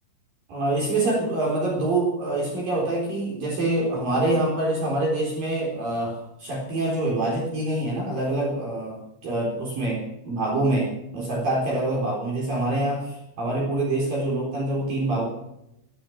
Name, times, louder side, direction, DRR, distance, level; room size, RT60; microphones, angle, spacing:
voice 1, 0.5-15.3, right 2 dB, 45° right, -2 dB, 5.2 m, -25 dB
16.0 x 14.5 x 5.9 m, 0.83 s
omnidirectional pair, 6.0 m